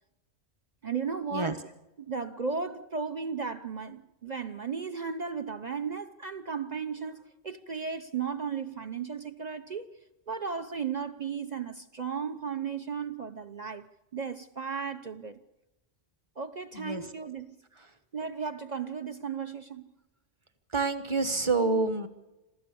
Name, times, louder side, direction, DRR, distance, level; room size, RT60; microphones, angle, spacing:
voice 1, 0.8-1.7 2.0-9.9 10.3-13.9 14.1-15.4 16.4-17.5 18.1-19.9 21.6-21.8, right 6 dB, 45° right, 0.9 m, -35 dB
voice 2, 20.7-22.1, right 3 dB, 25° right, 1.4 m, -27 dB
27.0 x 15.5 x 7.0 m
omnidirectional pair, 1.1 m